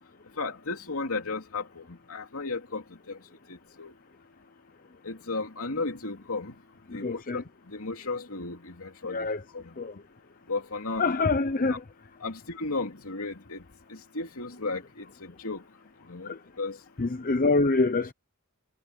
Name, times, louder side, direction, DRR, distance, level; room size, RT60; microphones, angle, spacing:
voice 1, 0.4-3.2 3.5-3.9 5.0-6.5 6.9-9.3 9.5-9.7 10.5-11.1 12.2-13.6 13.9-15.6 16.1-16.8, left 3 dB, 70° left, 3.0 m, -35 dB
voice 2, 6.9-7.4 9.1-9.4 9.8-9.9 11.0-11.8 16.2-16.4 17.0-18.1, left 3 dB, 40° left, 0.8 m, -25 dB
head